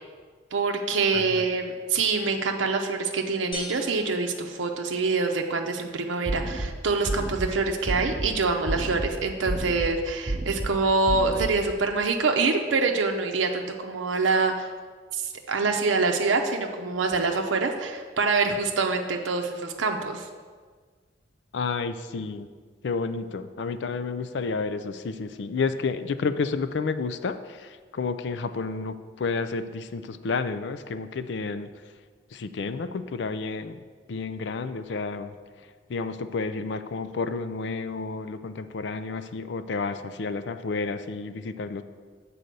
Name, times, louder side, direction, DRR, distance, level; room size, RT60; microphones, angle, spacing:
voice 1, 0.5-14.7 15.2-20.3, right 4 dB, 85° right, 3 dB, 0.6 m, -25 dB
voice 2, 1.1-1.4 21.5-22.5 22.8-31.7 32.3-33.8 34.1-35.4 35.9-41.8, left 4 dB, 65° left, 11 dB, 0.4 m, -31 dB
sound 1, 3.5-5.4, left 3 dB, 25° left, 0.7 m, -42 dB
sound 2, 6.2-6.7 7.1-7.5 7.9-8.3 8.7-9.1 9.5-9.9 10.3-10.7 11.1-11.5, right 2 dB, 30° right, 0.8 m, -30 dB
7.6 x 4.1 x 6.7 m, 1.5 s
head